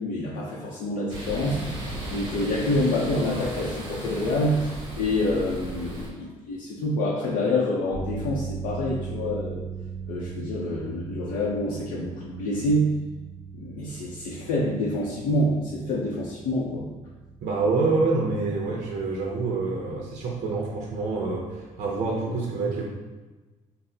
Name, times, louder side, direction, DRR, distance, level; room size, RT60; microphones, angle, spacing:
voice 1, 0.0-1.6 2.1-9.6 10.1-12.9 13.5-16.9, left 1 dB, 80° left, -5 dB, 0.6 m, -27 dB
sound 1, 1.1-6.1, right 1 dB, 40° right, 0.9 m, -35 dB
sound 2, 7.9-22.2, right 6 dB, 15° left, 1.2 m, -40 dB
voice 2, 17.4-22.8, right 3 dB, 55° right, -2 dB, 0.5 m, -26 dB
5.6 x 2.0 x 2.7 m, 1.2 s
cardioid pair, 180°, 13 cm